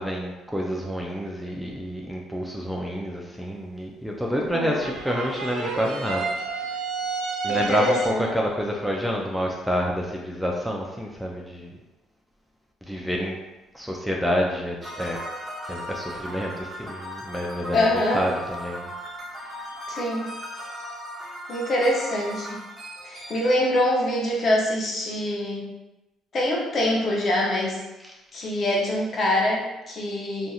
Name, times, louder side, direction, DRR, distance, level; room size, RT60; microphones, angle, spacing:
voice 1, 0.0-6.7 7.4-11.8 12.9-13.4 13.7-15.2 15.7-17.9 18.1-18.9, equal, ahead, -1 dB, 0.4 m, -28 dB
sound 1, 4.6-8.4, right 4 dB, 80° right, 0.5 m, -30 dB
voice 2, 7.5-8.3 17.7-18.3 19.9-20.3 21.5-22.6 23.0-25.7 26.3-27.8 28.3-30.5, left 1 dB, 45° left, -2 dB, 0.7 m, -24 dB
sound 2, 14.8-23.8, equal, 35° right, 0.9 m, -37 dB
2.7 x 2.5 x 2.3 m, 1.0 s
cardioid pair, 90°, 0 cm